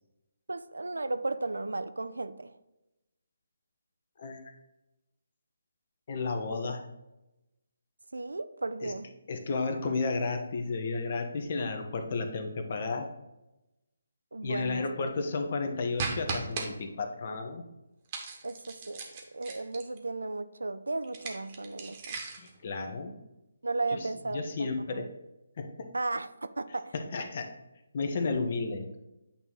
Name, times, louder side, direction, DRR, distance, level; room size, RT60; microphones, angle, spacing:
voice 1, 0.5-2.5 8.1-9.1 14.3-14.8 18.4-22.2 23.6-25.0 25.9-26.9, right 2 dB, 80° right, 12 dB, 0.4 m, -35 dB
voice 2, 4.2-4.5 6.1-6.8 8.8-8.9 9.3-13.1 14.4-17.6 22.4-23.1 23.9-25.1 25.6-25.9 26.9-27.5 27.9-28.9, left 3 dB, 45° left, 5 dB, 0.9 m, -33 dB
sound 1, 16.0-16.7 18.1-20.0 21.0-22.5, right 4 dB, 30° right, 1.1 m, -37 dB
8.5 x 2.9 x 3.9 m, 0.95 s
figure-of-eight pair, 150°, 0 cm